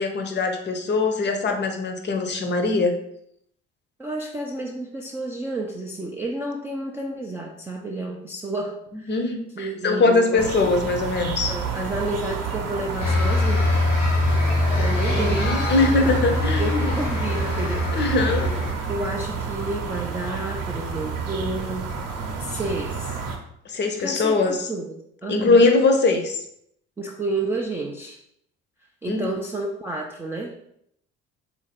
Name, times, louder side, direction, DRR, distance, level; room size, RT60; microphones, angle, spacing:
voice 1, 0.0-3.0 9.1-11.5 15.1-17.0 17.9-18.5 23.7-24.7 25.3-26.4 29.1-29.3, left 3 dB, 30° left, 5 dB, 0.6 m, -21 dB
voice 2, 4.0-9.2 9.6-10.5 11.5-13.6 14.8-15.8 16.0-18.2 18.9-22.0 22.4-23.2 23.9-25.7 27.0-28.2 29.0-30.6, right 2 dB, 5° right, -2 dB, 0.3 m, -31 dB
sound 1, 10.4-23.4, right 5 dB, 45° right, 0.8 m, -30 dB
sound 2, 13.0-18.7, left 2 dB, 80° left, 0.6 m, -23 dB
3.7 x 2.6 x 3.6 m, 0.73 s
figure-of-eight pair, 50°, 37 cm